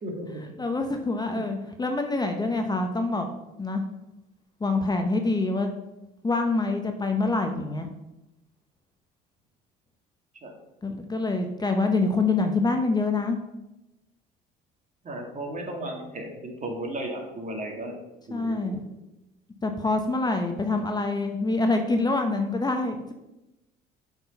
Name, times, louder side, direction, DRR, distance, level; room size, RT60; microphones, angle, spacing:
voice 1, 0.0-0.4 10.4-10.5 15.0-18.0 18.3-18.8, right 1 dB, 40° right, 1 dB, 2.4 m, -35 dB
voice 2, 0.6-3.3 3.6-3.8 4.6-5.7 6.2-7.9 10.8-13.4 18.3-18.8 19.6-23.1, left 3 dB, 20° left, 5 dB, 0.9 m, -26 dB
7.7 x 4.6 x 5.5 m, 0.95 s
hypercardioid pair, 70°, 20 cm